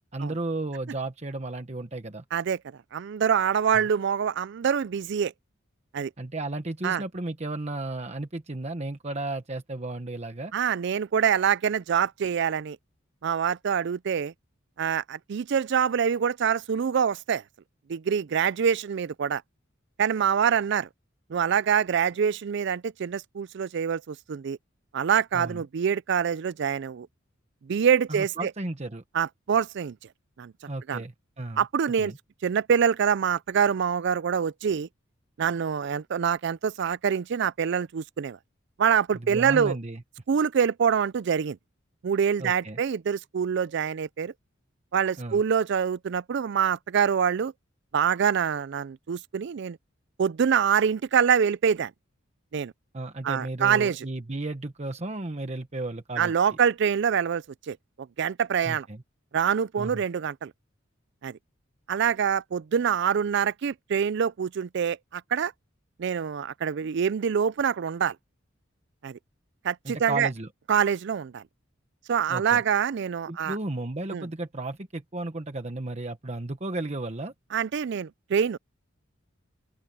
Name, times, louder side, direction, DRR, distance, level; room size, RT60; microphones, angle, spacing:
voice 1, 0.1-2.2 6.2-10.5 25.3-25.7 28.1-29.0 30.7-31.6 32.0-32.2 39.1-40.0 42.4-42.8 45.2-45.4 52.9-56.3 58.6-59.0 59.8-60.0 69.8-70.5 72.3-72.6 73.3-77.3, right 2 dB, 35° right, 1.1 m, -34 dB
voice 2, 2.9-5.3 5.9-6.1 6.8-7.0 10.5-12.8 13.2-14.3 14.8-17.4 17.9-19.4 20.0-20.9 21.3-24.6 24.9-27.1 27.6-28.5 29.1-30.0 30.4-30.5 30.9-31.0 31.6-32.1 32.4-34.9 35.4-38.4 38.8-39.8 40.3-41.6 42.0-44.3 44.9-47.5 47.9-49.8 50.2-51.9 52.5-52.7 53.2-54.1 56.2-58.9 59.3-60.5 61.2-61.4 61.9-65.5 66.0-68.2 69.0-69.2 69.6-70.3 70.7-71.4 72.1-73.6 74.1-74.3 77.5-78.6, right 7 dB, 60° right, 0.4 m, -25 dB
open air
head